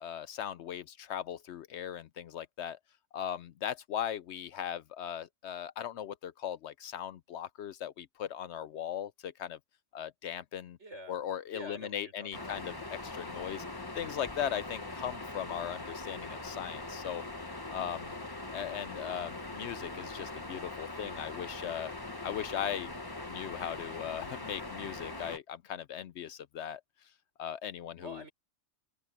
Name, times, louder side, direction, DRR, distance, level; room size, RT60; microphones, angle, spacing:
voice 1, 0.0-2.8 3.1-9.6 9.9-10.8 11.1-13.6 13.9-17.2 17.7-18.1 18.5-21.9 22.2-22.9 23.3-26.8 27.4-28.2, left 9 dB, 70° left, 0.8 m, -38 dB
voice 2, 10.8-11.2 11.5-12.6 28.0-28.3, equal, 65° right, 5.8 m, -47 dB
sound 1, 12.3-25.4, left 2 dB, 20° left, 1.3 m, -42 dB
open air
omnidirectional pair, 1.3 m